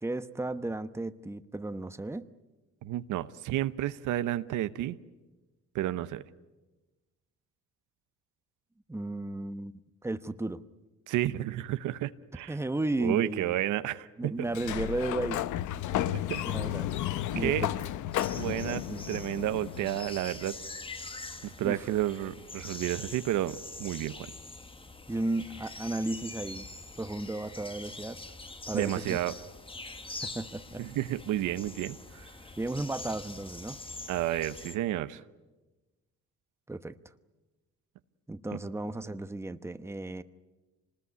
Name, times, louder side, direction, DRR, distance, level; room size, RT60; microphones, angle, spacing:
voice 1, 0.0-2.3 8.9-9.7 10.0-10.6 12.5-13.6 14.2-15.5 16.4-16.9 17.3-17.7 18.4-19.1 21.6-21.9 25.1-26.7 27.0-28.2 28.7-29.2 30.2-30.8 32.6-33.8 36.7-37.0 38.3-40.2, right 2 dB, 10° right, 11 dB, 1.0 m, -34 dB
voice 2, 2.8-5.0 5.7-6.2 11.1-12.6 13.0-14.3 16.1-16.4 17.4-17.7 18.4-20.6 21.4-24.3 28.7-29.3 30.8-32.3 34.1-35.2 38.5-38.6, right 13 dB, 90° right, 13 dB, 0.9 m, -31 dB
Sliding door, 14.5-20.1, left 13 dB, 80° left, 0.8 m, -33 dB
sound 1, 18.1-34.8, left 3 dB, 15° left, 1.3 m, -44 dB
26.0 x 20.0 x 9.6 m, 1.2 s
cardioid pair, 90°, 30 cm